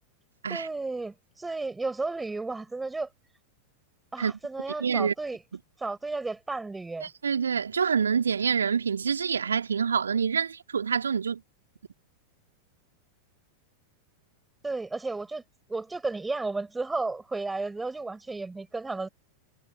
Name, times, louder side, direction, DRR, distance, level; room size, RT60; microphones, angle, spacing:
voice 1, 0.5-3.1 4.1-5.4 5.8-7.1 14.6-15.4 15.7-19.1, right 3 dB, 10° right, 6.2 m, -33 dB
voice 2, 4.8-5.1 7.0-11.4, right 6 dB, 70° right, 2.6 m, -26 dB
figure-of-eight pair, 90°, 0 cm